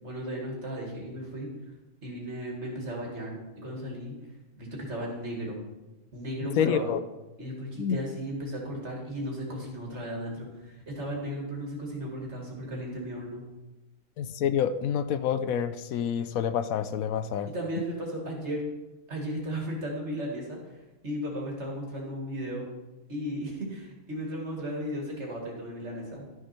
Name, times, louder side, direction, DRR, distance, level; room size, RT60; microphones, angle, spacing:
voice 1, 0.0-1.5 2.0-4.1 4.6-5.6 6.1-7.0 7.4-13.4 17.5-18.6 19.1-20.6 21.0-22.7 23.1-26.3, equal, 50° right, -1 dB, 2.6 m, -35 dB
voice 2, 6.6-7.0 7.8-8.0 14.2-17.5, left 8 dB, 75° left, 12 dB, 1.0 m, -27 dB
12.5 x 6.7 x 4.4 m, 1.0 s
omnidirectional pair, 1.5 m